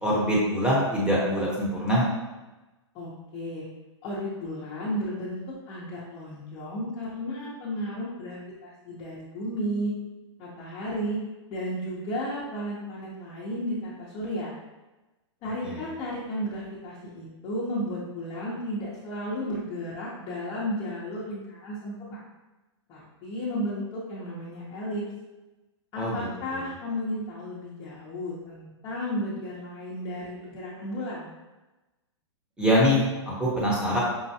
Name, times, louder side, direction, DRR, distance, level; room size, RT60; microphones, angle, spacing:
voice 1, 0.0-2.1 15.6-15.8 26.0-26.2 26.5-26.6 32.6-34.0, equal, 5° right, -6 dB, 1.0 m, -24 dB
voice 2, 2.9-3.6 4.0-5.4 5.7-9.9 10.4-11.2 11.5-14.5 15.4-22.2 22.9-25.1 25.9-31.3, equal, 30° left, -8 dB, 0.9 m, -33 dB
5.5 x 2.2 x 2.8 m, 1.1 s
hypercardioid pair, 140°, 16 cm